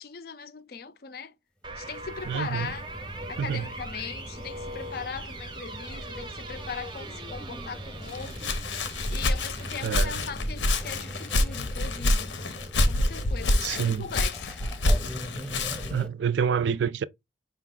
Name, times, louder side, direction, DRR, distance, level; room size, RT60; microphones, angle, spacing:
voice 1, 0.0-1.3 1.8-2.9 3.3-8.6 9.1-12.3 12.9-14.6, left 6 dB, 55° left, 0.5 m, -39 dB
sound 1, 1.6-10.0, right 2 dB, 25° right, 0.5 m, -41 dB
sound 2, 1.7-16.1, equal, 5° left, 0.8 m, -42 dB
voice 2, 2.3-2.7 3.4-3.7 9.8-10.2 13.6-14.1 15.9-17.0, right 7 dB, 75° right, 0.3 m, -27 dB
Walk footsteps, 8.1-16.0, left 1 dB, 90° left, 0.8 m, -27 dB
5.0 x 2.3 x 3.7 m
head